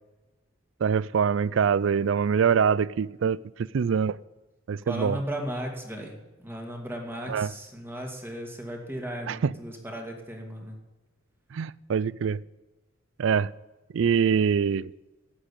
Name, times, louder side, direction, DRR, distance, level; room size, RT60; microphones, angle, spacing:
voice 1, 0.8-3.4 3.7-4.2 4.7-5.2 7.3-7.5 9.3-9.5 11.5-12.4 13.2-13.5 13.9-14.9, right 6 dB, 65° right, 0.4 m, -24 dB
voice 2, 4.9-10.8, equal, 10° right, 2.1 m, -36 dB
12.5 x 8.9 x 8.3 m
head